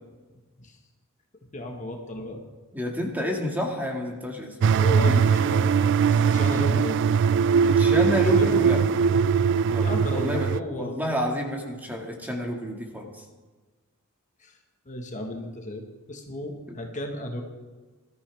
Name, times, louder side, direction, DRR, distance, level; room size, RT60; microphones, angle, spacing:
voice 1, 1.5-2.4 4.7-7.0 8.4-8.6 9.8-11.0 14.4-14.6 14.8-17.4, left 1 dB, 35° left, 2 dB, 1.5 m, -34 dB
voice 2, 2.7-4.6 4.9-5.6 7.6-8.8 9.7-13.2, left 1 dB, 10° right, 0 dB, 2.0 m, -30 dB
sound 1, 4.6-10.6, right 6 dB, 55° right, 0.3 m, -21 dB
20.0 x 13.5 x 3.5 m, 1.3 s
head